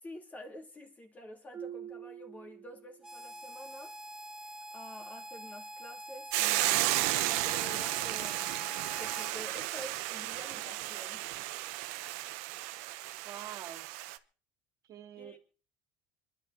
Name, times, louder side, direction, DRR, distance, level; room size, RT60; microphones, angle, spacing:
voice 1, 0.0-3.9 4.7-6.8 7.3-11.3 15.2-15.4, equal, 20° left, 2.9 m, -49 dB
Marimba xylophone, 1.5-3.3, right 9 dB, 30° right, 1.3 m, -46 dB
Harmonica, 3.0-9.4, right 1 dB, 5° right, 0.8 m, -45 dB
Hiss / Boiling, 6.3-14.2, right 17 dB, 80° right, 0.9 m, -33 dB
voice 2, 13.2-13.9 14.9-15.4, right 10 dB, 45° right, 2.5 m, -45 dB
27.0 x 12.0 x 3.5 m
cardioid pair, 140°, 8 cm